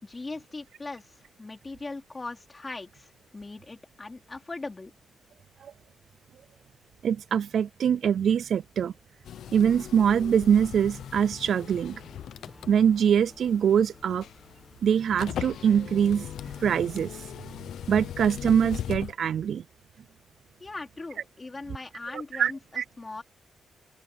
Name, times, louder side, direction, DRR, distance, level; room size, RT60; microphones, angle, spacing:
voice 1, 0.0-4.9 20.6-23.2, left 3 dB, 20° left, 4.1 m, -40 dB
voice 2, 7.0-8.9 9.5-12.0 12.7-14.2 14.8-16.3 16.6-17.1 17.9-19.6 22.1-22.8, right 8 dB, 60° right, 0.3 m, -23 dB
sound 1, 9.2-19.1, left 10 dB, 85° left, 0.8 m, -39 dB
sound 2, 9.5-18.9, left 1 dB, 5° left, 2.5 m, -54 dB
open air
wide cardioid pair, 160°, 0 cm